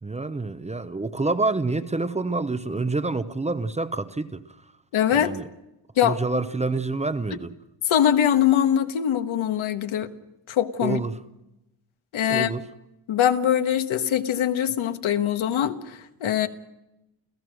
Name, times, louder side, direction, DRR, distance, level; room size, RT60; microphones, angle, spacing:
voice 1, 0.0-4.4 5.1-5.4 6.0-7.5 10.8-11.2 12.3-12.6, right 3 dB, 15° right, 0.6 m, -27 dB
voice 2, 4.9-5.3 6.0-6.2 7.8-10.1 10.5-11.0 12.1-12.7 13.1-16.5, left 10 dB, 85° left, 1.5 m, -22 dB
29.5 x 15.5 x 6.4 m
wide cardioid pair, 155°, 47 cm